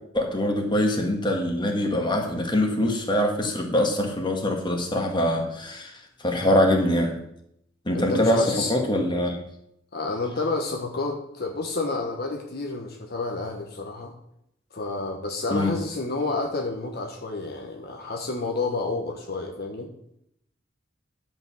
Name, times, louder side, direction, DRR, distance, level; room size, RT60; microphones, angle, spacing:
voice 1, 0.1-5.9 6.2-7.2 7.9-9.4 15.5-15.7, left 1 dB, 25° left, 2 dB, 1.8 m, -23 dB
voice 2, 7.9-8.7 9.9-14.1 14.7-19.9, left 3 dB, 55° left, 2 dB, 1.2 m, -30 dB
11.0 x 5.4 x 7.2 m, 0.76 s
head